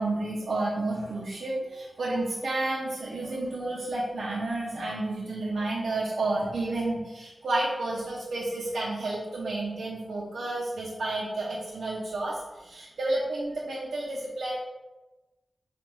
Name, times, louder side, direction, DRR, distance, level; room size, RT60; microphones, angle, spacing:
voice 1, 0.0-14.5, right 2 dB, 85° right, -7 dB, 0.8 m, -31 dB
6.2 x 2.5 x 3.1 m, 1.1 s
wide cardioid pair, 120°, 0 cm